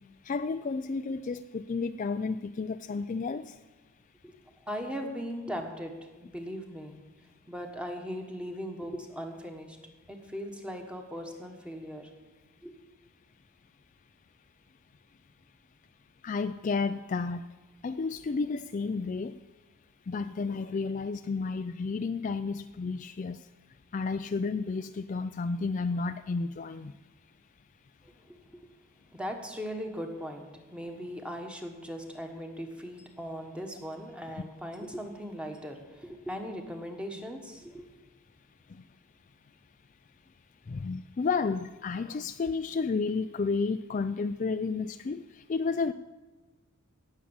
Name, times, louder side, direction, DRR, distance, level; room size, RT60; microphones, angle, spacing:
voice 1, 0.3-3.5 16.2-17.4 17.8-19.3 20.1-23.4 23.9-26.9 40.7-45.2 45.5-45.9, left 4 dB, 35° left, 10 dB, 0.3 m, -31 dB
voice 2, 4.7-5.9 6.2-7.0 7.5-9.8 10.1-12.1 12.6-12.7 28.0-28.6 29.1-37.8, equal, 5° right, 3 dB, 1.4 m, -39 dB
18.0 x 7.4 x 7.2 m, 1.2 s
head